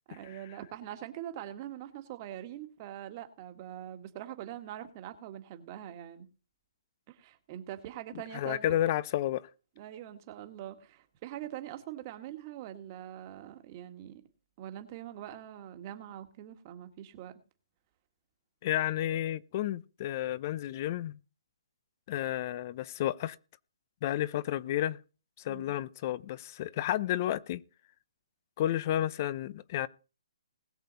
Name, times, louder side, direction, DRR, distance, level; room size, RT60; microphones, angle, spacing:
voice 1, 0.1-6.3 7.1-8.8 9.8-14.2 14.6-17.4 25.5-25.8, right 12 dB, 30° right, 1.7 m, -43 dB
voice 2, 8.3-9.5 18.6-21.2 22.1-23.4 24.0-25.0 25.4-27.6 28.6-29.9, left 12 dB, 35° left, 0.7 m, -31 dB
20.0 x 6.8 x 4.1 m
hypercardioid pair, 150°, 3 cm